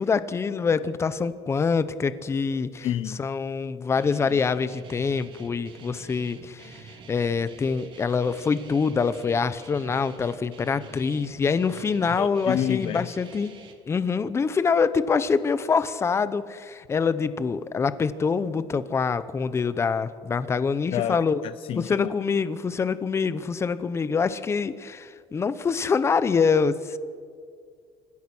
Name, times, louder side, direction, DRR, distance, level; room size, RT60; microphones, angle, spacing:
voice 1, 0.0-2.9 3.2-13.6 13.9-21.4 21.7-27.0, left 5 dB, 25° left, 0.8 m, -25 dB
voice 2, 2.8-3.2 12.0-13.1 20.9-21.2 21.4-22.1, left 11 dB, 55° left, 0.6 m, -29 dB
Guitar, 3.9-13.7, right 4 dB, 50° right, 2.9 m, -47 dB
28.0 x 15.5 x 6.2 m
cardioid pair, 130°, 11 cm